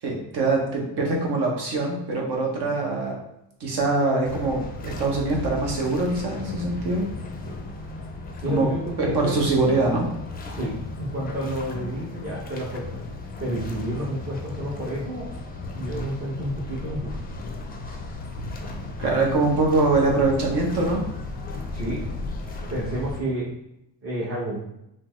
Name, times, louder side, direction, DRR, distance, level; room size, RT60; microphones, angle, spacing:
voice 1, 0.0-3.2 3.6-7.1 8.5-8.7 9.0-10.1 19.0-21.0, right 3 dB, 60° right, 0 dB, 1.0 m, -23 dB
sound 1, 4.2-23.2, left 2 dB, 20° left, 0.4 m, -35 dB
voice 2, 8.4-9.4 10.5-13.0 13.4-15.3 15.7-17.1 21.7-22.0 22.7-23.5 24.0-24.6, right 1 dB, 30° right, -6 dB, 0.9 m, -30 dB
3.3 x 2.1 x 3.1 m, 0.82 s
cardioid pair, 105°, 44 cm